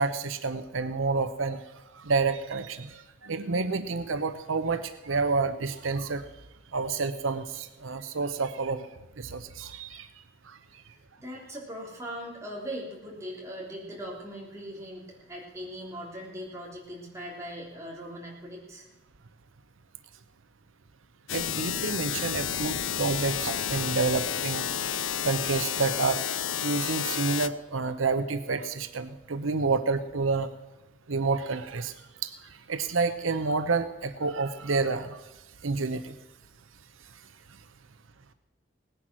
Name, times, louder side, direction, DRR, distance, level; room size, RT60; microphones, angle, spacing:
voice 1, 0.0-1.6 2.0-6.2 6.7-8.9 9.2-10.1 10.5-10.6 21.3-26.2 26.6-30.5 31.1-31.9 32.2-35.2 35.6-36.1, right 4 dB, 85° right, 10 dB, 0.8 m, -29 dB
voice 2, 10.8-18.8, equal, 15° right, -3 dB, 3.4 m, -40 dB
sound 1, 21.3-27.5, left 9 dB, 80° left, 0.7 m, -31 dB
18.0 x 10.5 x 6.2 m, 1.1 s
head